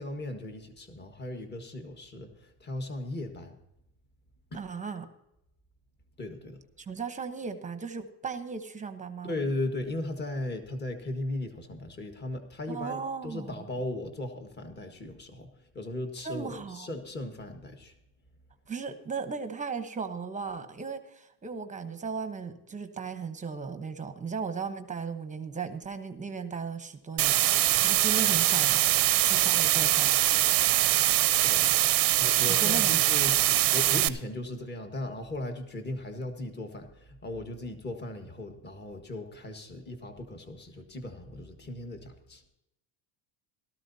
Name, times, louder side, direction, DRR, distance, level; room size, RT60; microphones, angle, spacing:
voice 1, 0.0-3.5 4.5-4.6 6.2-6.6 9.2-17.9 31.3-31.7 32.2-42.4, left 2 dB, 20° left, 5 dB, 1.6 m, -37 dB
voice 2, 4.5-5.1 6.8-9.3 12.7-13.7 16.2-16.9 18.7-28.8 29.2-30.1 32.6-33.3, right 5 dB, 15° right, 8 dB, 1.0 m, -36 dB
sound 1, 27.2-34.1, right 15 dB, 45° right, 0.7 m, -23 dB
17.5 x 13.5 x 2.8 m, 0.84 s
cardioid pair, 145°, 49 cm